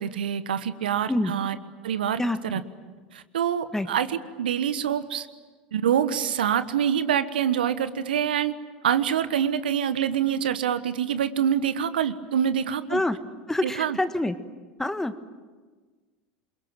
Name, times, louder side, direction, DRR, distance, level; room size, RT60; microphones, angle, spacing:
voice 1, 0.0-1.6 1.8-2.6 3.1-5.3 5.7-8.5 8.8-13.0 13.6-14.0, right 9 dB, 75° right, 12 dB, 1.2 m, -26 dB
voice 2, 13.5-14.3 14.8-15.1, left 1 dB, 10° left, 10 dB, 1.7 m, -26 dB
28.0 x 23.0 x 9.1 m, 1.4 s
figure-of-eight pair, 80°, 5 cm